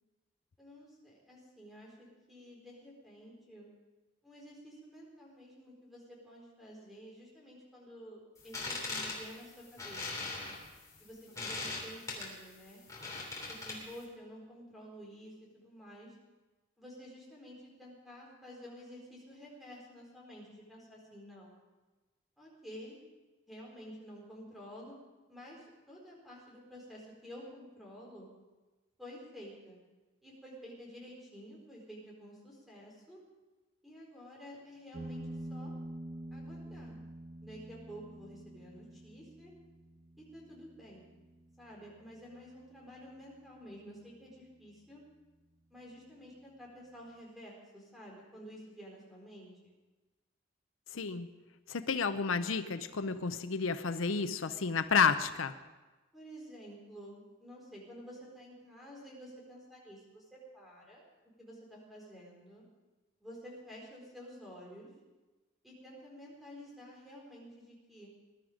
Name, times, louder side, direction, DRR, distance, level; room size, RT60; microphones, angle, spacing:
voice 1, 0.6-3.7 4.2-10.3 11.0-12.8 13.5-16.2 16.8-21.6 22.4-23.0 23.5-25.0 25.3-28.3 29.0-29.8 30.2-33.2 33.8-35.7 36.3-37.0 37.4-39.5 40.3-41.1 41.6-45.0 45.7-49.8 56.1-61.0 61.4-62.6 63.2-64.9 65.6-68.1, equal, ahead, -3 dB, 4.3 m, -51 dB
sound 1, 8.4-14.0, left 3 dB, 15° left, 3.1 m, -40 dB
sound 2, 34.9-44.0, right 1 dB, 45° right, 2.0 m, -48 dB
voice 2, 50.9-51.3 51.7-55.5, left 5 dB, 85° left, 10 dB, 0.7 m, -31 dB
20.0 x 12.0 x 5.1 m, 1.2 s
head